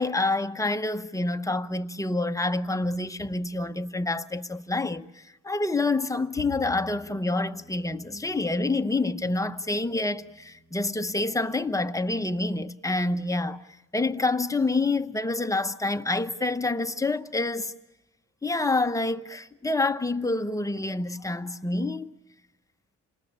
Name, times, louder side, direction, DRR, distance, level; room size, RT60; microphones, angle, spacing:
voice 1, 0.0-13.6 13.9-17.7 18.4-22.1, left 2 dB, 10° left, 0.9 m, -27 dB
Bowed string instrument, 6.4-12.7, equal, 25° right, 1.9 m, -50 dB
28.5 x 19.5 x 8.7 m
cardioid pair, 125°, 31 cm